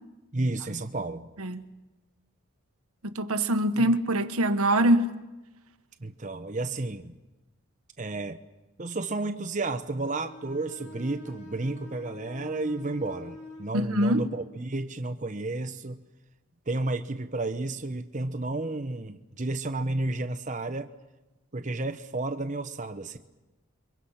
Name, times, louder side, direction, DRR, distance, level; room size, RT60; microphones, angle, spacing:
voice 1, 0.3-1.3 3.7-4.0 6.0-7.1 8.0-8.4 8.8-16.0 16.7-20.9 21.5-23.3, right 2 dB, 35° right, 0.9 m, -32 dB
voice 2, 3.1-5.1 13.7-14.2, right 1 dB, 85° right, 1.5 m, -23 dB
Bowed string instrument, 10.0-13.8, left 2 dB, 85° left, 5.6 m, -46 dB
29.5 x 23.5 x 5.8 m
head